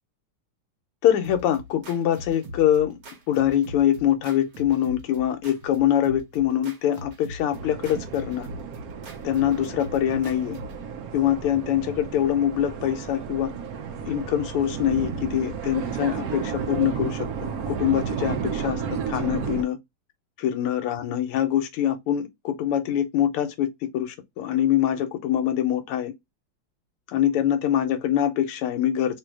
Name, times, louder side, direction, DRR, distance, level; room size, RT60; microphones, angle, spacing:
voice 1, 1.0-3.0 3.3-8.5 9.2-10.6 11.1-13.5 14.1-17.3 17.7-19.8 20.4-23.7 23.9-26.1 27.1-29.2, left 11 dB, 85° left, 1.6 m, -24 dB
sound 1, 1.2-10.8, equal, 60° right, 1.7 m, -42 dB
sound 2, 7.5-19.6, right 6 dB, 75° right, 0.8 m, -32 dB
3.7 x 2.7 x 4.5 m
omnidirectional pair, 2.4 m